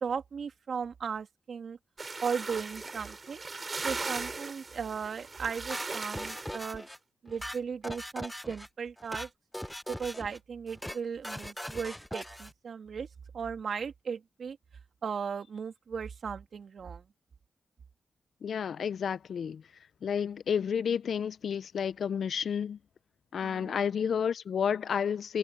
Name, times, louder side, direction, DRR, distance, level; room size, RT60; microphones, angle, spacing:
voice 1, 0.0-1.8 2.2-3.4 3.8-6.9 7.2-9.3 9.9-13.1 13.3-14.6 15.0-17.0 23.4-23.9, right 6 dB, 70° right, 2.9 m, -36 dB
sound 1, 2.0-6.7, right 3 dB, 45° right, 3.3 m, -38 dB
sound 2, 5.7-7.0 7.3-8.7 9.0-9.3 9.5-10.4 10.7-11.0 11.2-12.5, equal, 5° left, 0.7 m, -40 dB
voice 2, 18.4-19.6 20.0-22.8 23.3-25.4, left 7 dB, 75° left, 0.5 m, -31 dB
supercardioid pair, 40°, 0 cm